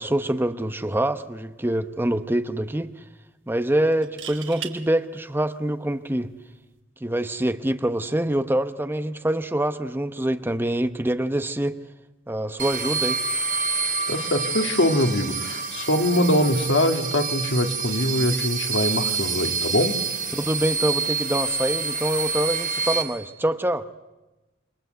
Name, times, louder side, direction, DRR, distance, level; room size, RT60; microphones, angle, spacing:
voice 1, 0.0-2.9 3.5-6.3 7.0-11.8 12.3-13.2 20.3-23.8, right 1 dB, 10° right, 0.9 m, -25 dB
sound 1, 1.1-1.3 1.7-1.8 3.9-4.8 6.6-6.8, right 9 dB, 85° right, 2.6 m, -37 dB
sound 2, 12.6-23.0, right 5 dB, 45° right, 3.3 m, -27 dB
voice 2, 14.1-20.0, left 1 dB, 75° left, 2.6 m, -23 dB
28.5 x 25.5 x 8.1 m
head